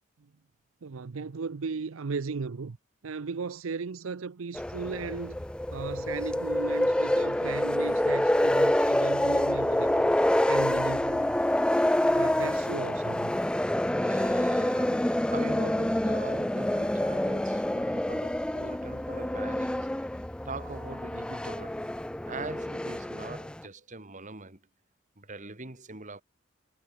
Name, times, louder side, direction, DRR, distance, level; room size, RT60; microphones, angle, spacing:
voice 1, 0.8-2.8 3.0-5.4 5.7-11.4 12.1-13.3, right 4 dB, 80° right, 0.6 m, -36 dB
sound 1, 4.5-23.6, left 1 dB, 5° left, 0.3 m, -27 dB
voice 2, 13.9-21.9 22.3-24.6 25.2-26.2, right 2 dB, 40° right, 3.2 m, -42 dB
head